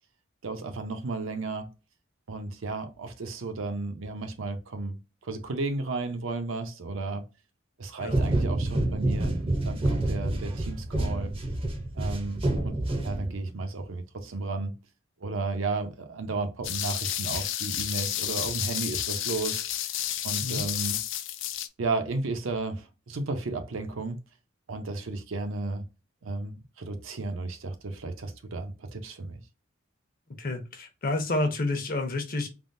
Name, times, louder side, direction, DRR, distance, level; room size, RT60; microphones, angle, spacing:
voice 1, 0.4-1.7 2.3-7.2 7.8-9.3 9.6-11.3 12.0-14.7 15.2-20.0 20.2-21.0 21.8-24.2 24.7-25.8 26.2-29.4, right 3 dB, 75° right, 0.6 m, -33 dB
sound 1, 8.1-13.6, right 1 dB, 30° right, 0.5 m, -28 dB
sound 2, 16.6-21.7, left 12 dB, 65° left, 0.4 m, -31 dB
voice 2, 30.4-32.5, left 2 dB, 45° left, 0.8 m, -29 dB
3.5 x 2.0 x 2.5 m
head